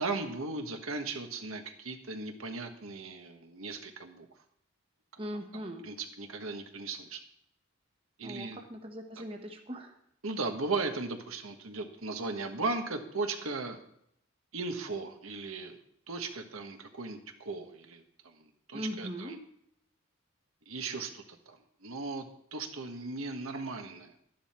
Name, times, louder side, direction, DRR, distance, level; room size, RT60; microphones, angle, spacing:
voice 1, 0.0-4.3 5.5-7.2 8.2-8.6 10.2-13.8 14.5-15.8 16.1-18.4 18.7-19.4 20.7-24.1, right 3 dB, 75° right, 5 dB, 1.5 m, -37 dB
voice 2, 5.2-5.9 8.2-10.0 18.7-19.4, equal, 25° right, 4 dB, 1.2 m, -40 dB
12.0 x 11.0 x 4.4 m, 0.71 s
head